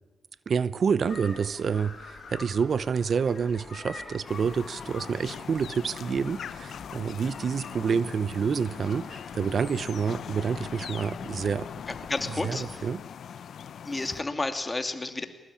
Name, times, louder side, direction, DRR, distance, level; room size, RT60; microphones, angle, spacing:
voice 1, 0.5-11.7 12.4-13.0, right 6 dB, 60° right, 17 dB, 0.7 m, -28 dB
sound 1, 1.0-12.9, left 3 dB, 50° left, 8.0 m, -47 dB
sound 2, 4.3-14.2, left 8 dB, 75° left, 0.7 m, -41 dB
voice 2, 12.1-12.8 13.8-15.3, left 2 dB, 25° left, 7 dB, 2.7 m, -31 dB
22.0 x 20.5 x 8.6 m, 1.2 s
cardioid pair, 80°, 0 cm